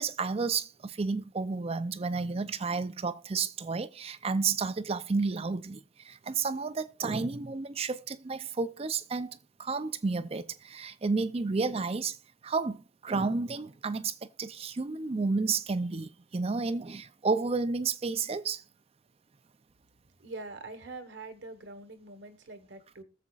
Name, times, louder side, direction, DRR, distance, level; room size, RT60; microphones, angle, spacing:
voice 1, 0.0-12.2 12.4-18.6, right 4 dB, 35° right, 0.5 m, -31 dB
voice 2, 20.2-23.0, right 3 dB, 75° right, 1.4 m, -44 dB
21.0 x 7.3 x 2.4 m
head